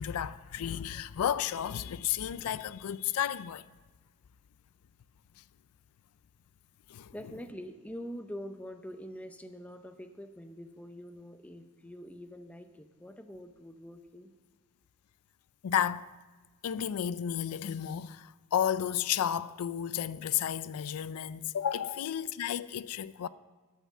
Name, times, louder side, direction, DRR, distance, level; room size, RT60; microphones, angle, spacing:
voice 1, 0.0-3.6 6.9-7.1 15.6-16.1 16.6-23.3, left 9 dB, 85° left, 0.4 m, -32 dB
voice 2, 7.1-14.3, equal, 5° left, 0.6 m, -45 dB
12.5 x 5.8 x 7.2 m
head